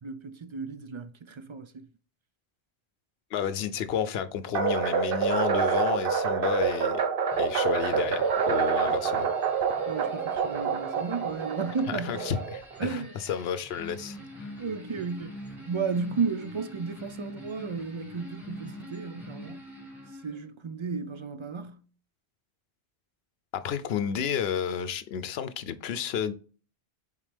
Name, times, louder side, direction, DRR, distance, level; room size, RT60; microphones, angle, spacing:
voice 1, 0.0-1.9 9.9-12.3 12.8-13.2 14.6-19.6 20.2-21.8, right 5 dB, 40° right, 0.4 m, -33 dB
voice 2, 3.3-7.0 7.4-9.3 11.9-14.5 23.5-26.3, left 8 dB, 75° left, 0.9 m, -31 dB
sound 1, 4.6-12.8, right 6 dB, 65° right, 0.9 m, -27 dB
sound 2, 7.3-20.5, left 1 dB, ahead, 2.1 m, -46 dB
7.3 x 4.1 x 3.4 m
omnidirectional pair, 1.1 m